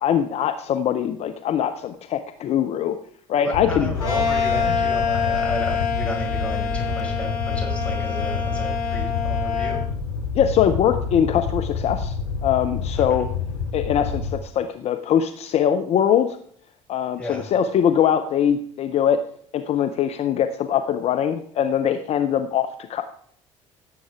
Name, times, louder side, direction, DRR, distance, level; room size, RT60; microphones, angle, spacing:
voice 1, 0.0-3.0 3.3-4.0 10.3-12.1 12.4-13.3 13.7-16.4 16.9-19.2 19.5-23.0, left 9 dB, 45° left, 8 dB, 0.7 m, -22 dB
voice 2, 3.4-7.3 7.5-9.8 17.2-17.4, left 1 dB, 10° left, -2 dB, 5.4 m, -33 dB
Fire, 3.5-14.4, left 5 dB, 80° left, 1.0 m, -28 dB
sound 1, 4.0-9.8, left 6 dB, 60° left, 3.7 m, -26 dB
17.0 x 7.8 x 3.5 m, 0.62 s
figure-of-eight pair, 50°, 15 cm